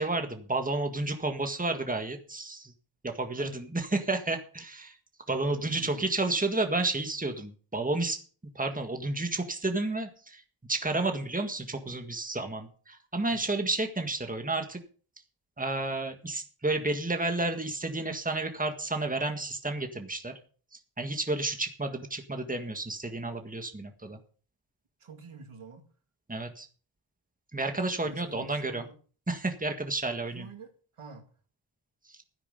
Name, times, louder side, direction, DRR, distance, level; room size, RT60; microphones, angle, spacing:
voice 1, 0.0-2.7 3.0-4.9 5.3-8.2 8.5-10.4 10.7-14.8 15.6-20.3 21.0-24.2 26.3-26.6 27.5-28.8 29.3-30.5, right 2 dB, 15° right, 1.7 m, -31 dB
voice 2, 5.4-6.1 13.3-13.4 25.0-25.8 28.0-29.0 30.3-31.3, right 4 dB, 85° right, 2.2 m, -47 dB
13.0 x 9.9 x 5.3 m
wide cardioid pair, 95°, 49 cm